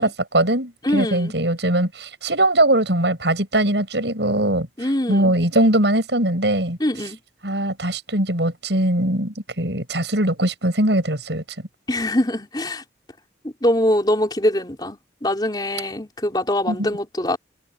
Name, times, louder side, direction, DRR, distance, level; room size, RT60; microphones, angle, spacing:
voice 1, 0.0-4.7 5.1-6.8 7.4-11.4 16.7-16.9, right 1 dB, 75° right, 7.2 m, -21 dB
voice 2, 0.8-1.3 4.8-5.3 6.8-7.2 11.9-12.8 13.4-17.4, left 1 dB, 25° left, 4.3 m, -23 dB
head